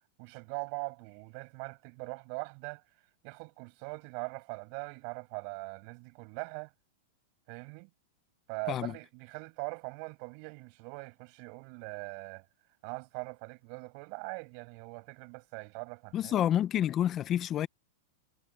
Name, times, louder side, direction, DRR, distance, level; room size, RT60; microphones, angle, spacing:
voice 1, 0.2-2.8 3.2-6.7 7.5-7.9 8.5-12.4 12.8-16.3, right 40 dB or more, 50° right, 6.5 m, -41 dB
voice 2, 16.1-17.7, left 11 dB, 30° left, 0.8 m, -28 dB
supercardioid pair, 140°, 0 cm